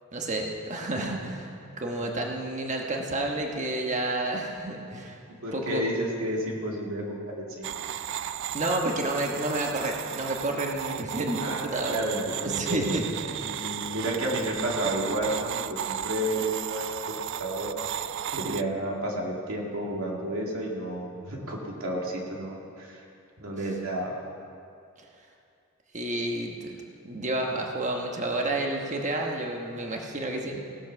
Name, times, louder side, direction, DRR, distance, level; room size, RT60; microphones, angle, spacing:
voice 1, 0.1-1.5 1.8-5.2 5.5-5.8 8.5-12.0 12.4-13.6 25.9-26.7 27.0-30.6, right 2 dB, 35° right, 1 dB, 1.2 m, -30 dB
voice 2, 5.3-7.7 11.4-13.0 13.3-18.0 18.3-23.0 23.4-24.1, right 1 dB, 90° right, -2 dB, 2.4 m, -31 dB
sound 1, 7.6-18.6, right 10 dB, 60° right, 0.3 m, -34 dB
17.0 x 7.3 x 6.0 m, 2.5 s
head